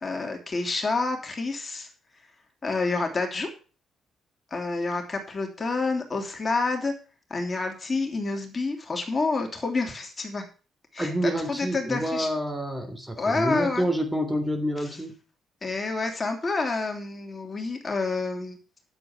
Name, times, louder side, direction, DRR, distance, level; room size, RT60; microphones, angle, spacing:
voice 1, 0.0-1.9 2.6-3.5 4.5-6.9 7.3-10.4 10.9-12.3 13.2-13.8 14.8-15.0 15.6-18.6, left 3 dB, 30° left, 3 dB, 3.1 m, -28 dB
voice 2, 11.0-15.1, equal, 10° right, 6 dB, 2.9 m, -28 dB
10.0 x 7.9 x 6.0 m, 0.36 s
cardioid pair, 90°, 0 cm